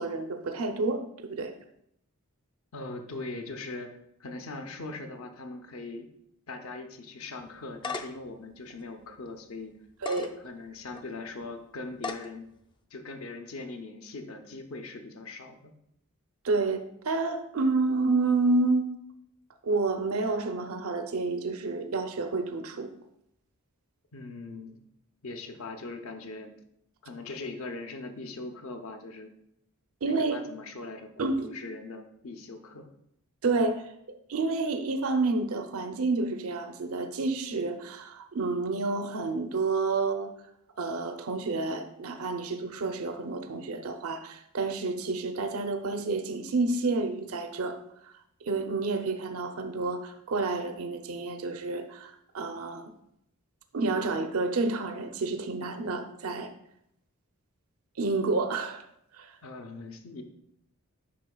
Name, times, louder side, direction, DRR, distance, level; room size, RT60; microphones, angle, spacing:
voice 1, 0.0-1.5 10.0-10.3 16.4-18.9 19.6-22.9 30.0-30.4 31.2-31.5 33.4-33.8 34.3-40.3 40.8-47.8 48.4-52.9 53.7-56.5 58.0-58.8 59.2-59.3, right 3 dB, 75° right, 6 dB, 0.6 m, -29 dB
voice 2, 2.7-3.9 4.2-6.1 6.5-9.7 10.4-12.5 12.9-15.7 24.1-24.8 25.2-26.5 27.0-29.3 30.0-32.9 59.4-60.2, left 3 dB, 65° left, 6 dB, 0.7 m, -40 dB
sound 1, 7.5-8.3 8.8-8.9 9.9-10.3 10.9-11.1 12.0-12.3, left 3 dB, 20° left, 0.4 m, -35 dB
8.6 x 5.8 x 2.3 m, 0.76 s
head